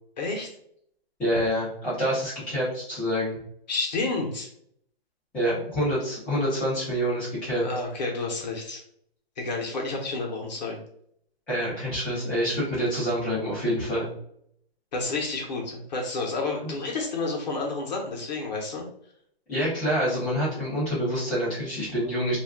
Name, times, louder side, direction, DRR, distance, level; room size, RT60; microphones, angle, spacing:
voice 1, 0.2-0.5 3.7-4.5 7.6-8.8 9.4-10.8 14.9-18.9, left 3 dB, 45° left, 0 dB, 0.8 m, -30 dB
voice 2, 1.2-3.4 5.3-7.6 11.5-14.1 19.5-22.4, equal, 5° left, -12 dB, 0.4 m, -27 dB
2.3 x 2.1 x 3.4 m, 0.68 s
hypercardioid pair, 160°, 31 cm